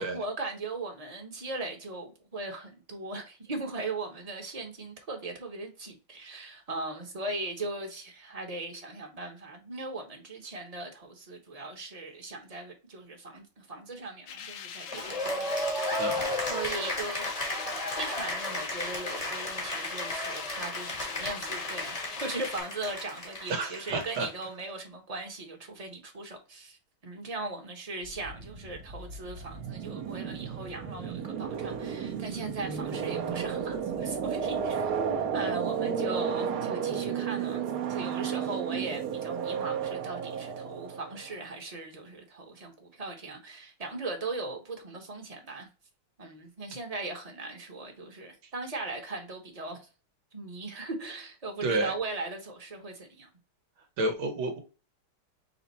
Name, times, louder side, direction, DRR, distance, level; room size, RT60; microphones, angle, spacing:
voice 1, 0.0-15.7 16.5-17.7 18.0-45.7 46.2-49.9 50.3-53.3, right 2 dB, 25° right, 0.9 m, -39 dB
sound 1, 14.3-22.6, left 8 dB, 80° left, 1.5 m, -43 dB
Cheering / Applause, 14.9-24.4, left 1 dB, 25° left, 0.8 m, -34 dB
voice 2, 16.0-16.3 23.5-24.3 51.6-51.9 54.0-54.6, right 2 dB, 80° right, 1.8 m, -30 dB
sound 2, 28.0-41.4, right 7 dB, 60° right, 1.2 m, -33 dB
5.8 x 2.1 x 4.1 m
omnidirectional pair, 2.3 m